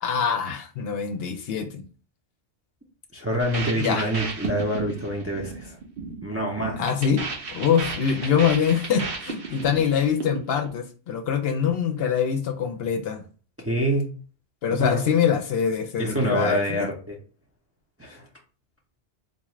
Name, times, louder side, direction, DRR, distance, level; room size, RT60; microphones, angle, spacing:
voice 1, 0.0-1.8 3.8-4.1 6.8-7.3 7.5-13.2 14.6-16.9, left 7 dB, 65° left, 6 dB, 0.7 m, -24 dB
voice 2, 3.1-5.8 6.2-6.8 8.2-8.3 13.6-14.1 14.8-15.0 16.0-17.2 18.0-18.3, equal, 15° right, -2 dB, 0.5 m, -26 dB
sound 1, 3.4-10.7, right 4 dB, 60° right, 0.9 m, -35 dB
4.0 x 2.4 x 3.0 m, 0.39 s
omnidirectional pair, 1.1 m